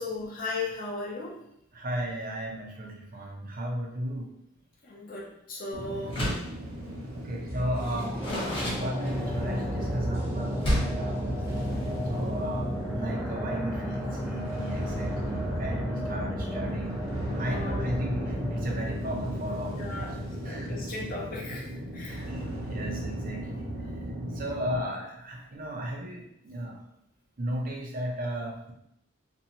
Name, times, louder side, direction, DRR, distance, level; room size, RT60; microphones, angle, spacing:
voice 1, 0.0-1.4 4.8-6.2 17.4-17.9 19.7-21.7 21.9-22.2 23.8-24.0, left 3 dB, 45° left, -3 dB, 0.6 m, -37 dB
voice 2, 1.7-4.3 7.1-11.4 12.1-17.0 17.3-20.1 20.4-20.8 22.1-23.7 24.3-26.8 27.4-28.7, right 1 dB, 45° right, 0 dB, 0.6 m, -35 dB
sound 1, 5.7-24.8, equal, 70° right, 0.8 m, -35 dB
Door, 6.0-6.6 7.7-9.4 10.6-11.1, equal, 25° left, 1.0 m, -30 dB
sound 2, 7.5-20.6 20.9-21.0, equal, 15° right, 0.8 m, -35 dB
2.6 x 2.2 x 2.9 m, 0.75 s
head